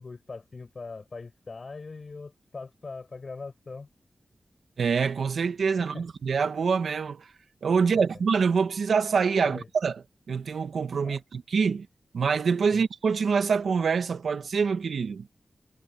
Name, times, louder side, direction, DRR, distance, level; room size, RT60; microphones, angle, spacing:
voice 1, 0.0-3.9 5.8-6.0 7.9-8.0 9.4-9.7 11.0-11.2 12.7-12.8, left 4 dB, 45° left, 5.9 m, -41 dB
voice 2, 4.8-7.3 7.6-10.0 10.3-11.9 12.1-15.3, right 5 dB, 90° right, 1.5 m, -25 dB
wide cardioid pair, 135°, 0 cm